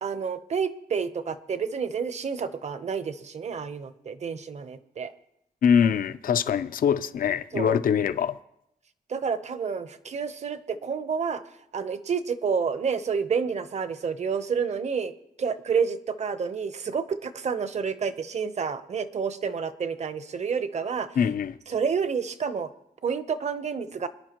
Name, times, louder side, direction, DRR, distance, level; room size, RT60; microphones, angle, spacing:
voice 1, 0.0-5.1 7.5-7.8 9.1-11.4 11.7-15.1 15.4-21.1 21.7-22.7 23.0-24.1, right 6 dB, 45° right, 0.9 m, -29 dB
voice 2, 5.6-8.4 21.2-21.5, left 7 dB, 60° left, 0.6 m, -23 dB
26.0 x 10.5 x 3.0 m
wide cardioid pair, 125°, 16 cm